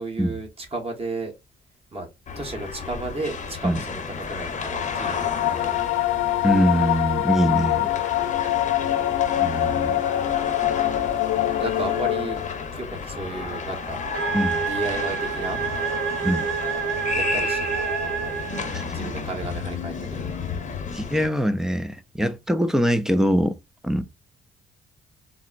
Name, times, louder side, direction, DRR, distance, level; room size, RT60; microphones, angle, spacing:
voice 1, 0.0-1.3 1.9-2.1 2.3-4.0 4.3-5.8 11.6-12.4 12.7-14.0 14.7-15.6 17.1-18.4 18.9-20.2, right 2 dB, 30° right, 1.1 m, -33 dB
sound 1, 2.3-21.3, left 5 dB, 40° left, 0.8 m, -33 dB
sound 2, 4.6-12.7, left 14 dB, 80° left, 0.4 m, -24 dB
voice 2, 6.4-7.9 9.4-10.0 14.3-14.6 16.2-16.5 18.7-18.8 20.9-23.5 23.8-24.0, equal, 5° right, 0.4 m, -23 dB
sound 3, 14.1-19.0, right 6 dB, 80° right, 0.6 m, -28 dB
3.8 x 2.0 x 2.4 m
cardioid pair, 90°, 20 cm